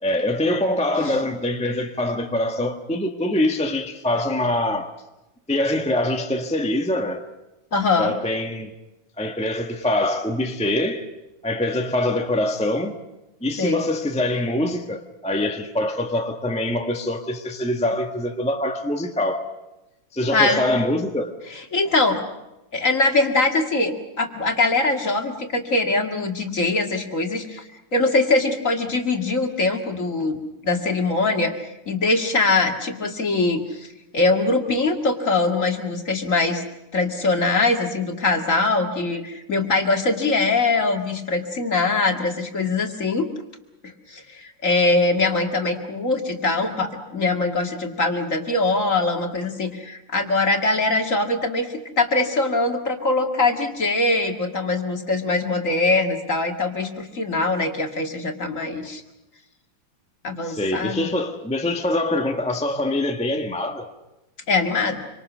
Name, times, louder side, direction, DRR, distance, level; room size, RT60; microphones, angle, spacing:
voice 1, 0.0-4.9 5.5-7.2 8.0-8.7 9.2-11.1 11.4-13.0 13.4-19.5 20.1-21.4 60.4-63.9, left 1 dB, 5° left, 1.2 m, -24 dB
voice 2, 7.7-8.1 13.6-13.8 20.3-20.7 21.7-22.2 22.7-33.9 34.1-36.6 36.9-43.3 43.8-59.0 60.2-61.1 64.5-65.0, left 3 dB, 40° left, 2.4 m, -22 dB
26.5 x 25.0 x 6.2 m
omnidirectional pair, 2.3 m